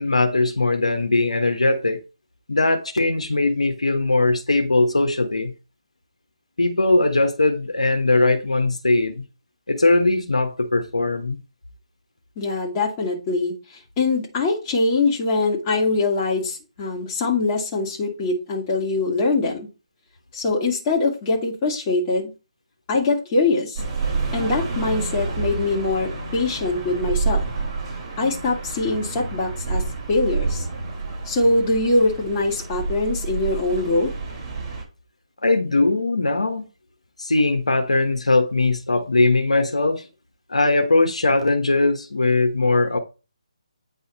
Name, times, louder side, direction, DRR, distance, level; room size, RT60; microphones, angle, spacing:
voice 1, 0.0-2.0 2.5-5.5 6.6-9.2 9.7-11.4 35.4-36.6 37.2-40.1 40.5-43.0, left 2 dB, 80° left, 1.3 m, -20 dB
voice 2, 12.4-19.7 20.3-22.3 22.9-23.8 24.3-27.4 28.2-29.8 30.1-30.6 31.3-34.1, left 3 dB, 20° left, 2.3 m, -23 dB
sound 1, 23.8-34.8, right 4 dB, 30° right, 3.4 m, -28 dB
8.9 x 4.2 x 4.2 m
figure-of-eight pair, 150°, 3 cm